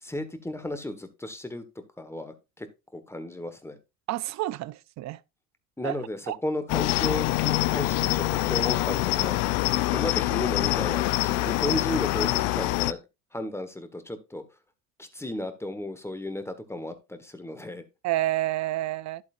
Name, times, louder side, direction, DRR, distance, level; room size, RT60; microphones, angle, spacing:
voice 1, 0.0-1.6 2.0-2.7 2.9-3.8 5.8-9.4 9.9-13.0 13.3-14.4 15.0-17.8, left 1 dB, 5° left, 1.5 m, -34 dB
voice 2, 4.1-5.2 5.8-5.9 6.3-6.4 18.0-19.2, right 16 dB, 45° right, 0.5 m, -29 dB
Cricket, 6.7-12.9, left 17 dB, 75° left, 0.7 m, -25 dB
11.0 x 8.3 x 2.6 m
supercardioid pair, 100°, 38 cm